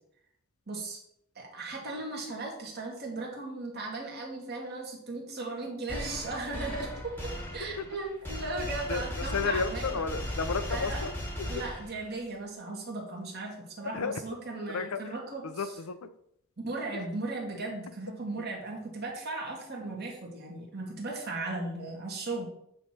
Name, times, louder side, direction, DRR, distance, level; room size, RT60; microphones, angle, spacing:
voice 1, 0.7-1.0 1.4-9.9 10.7-11.0 11.5-15.4 16.6-22.5, right 2 dB, 45° right, -1 dB, 2.1 m, -37 dB
sound 1, 5.9-12.2, left 1 dB, 10° left, 1.2 m, -37 dB
voice 2, 8.9-11.6 13.9-14.2 14.7-15.0 15.4-16.1, left 5 dB, 75° left, 10 dB, 0.6 m, -33 dB
8.9 x 3.2 x 5.8 m, 0.72 s
head